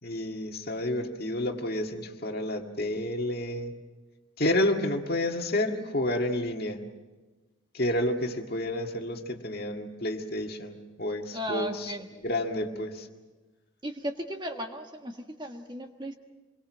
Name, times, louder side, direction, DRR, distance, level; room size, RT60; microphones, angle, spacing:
voice 1, 0.0-3.7 4.4-6.8 7.7-11.9 12.2-13.1, left 1 dB, 45° left, 3 dB, 1.9 m, -30 dB
voice 2, 11.3-12.1 13.8-16.1, equal, 20° right, 4 dB, 1.5 m, -35 dB
27.0 x 22.5 x 6.3 m, 1.2 s
head